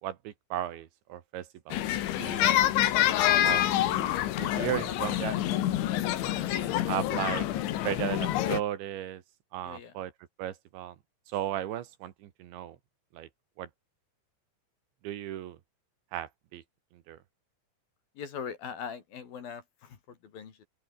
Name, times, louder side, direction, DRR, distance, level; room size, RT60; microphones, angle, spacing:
voice 1, 0.0-1.8 2.2-2.7 3.4-3.6 4.4-5.4 6.9-7.5 7.8-9.2 9.5-10.1 10.4-11.0 11.3-12.8 13.1-13.3 13.6-13.7 15.0-15.6 16.1-16.6 16.9-17.2, right 12 dB, 80° right, 4.0 m, -35 dB
sound 1, 1.7-8.6, left 13 dB, 80° left, 4.1 m, -27 dB
voice 2, 3.8-4.2 4.5-4.9 6.4-6.7 7.1-7.3 9.6-9.9 18.2-20.6, left 7 dB, 55° left, 4.4 m, -41 dB
open air
omnidirectional pair, 5.4 m